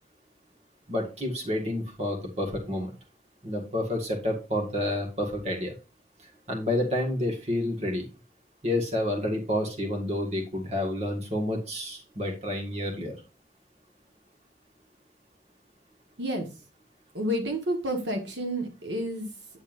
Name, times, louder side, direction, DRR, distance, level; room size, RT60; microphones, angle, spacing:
voice 1, 0.9-2.9 3.4-5.7 6.5-8.1 8.6-13.2, left 1 dB, 40° right, 2 dB, 1.8 m, -29 dB
voice 2, 17.1-19.3, equal, 80° right, 4 dB, 1.6 m, -30 dB
9.0 x 7.0 x 2.6 m, 0.31 s
head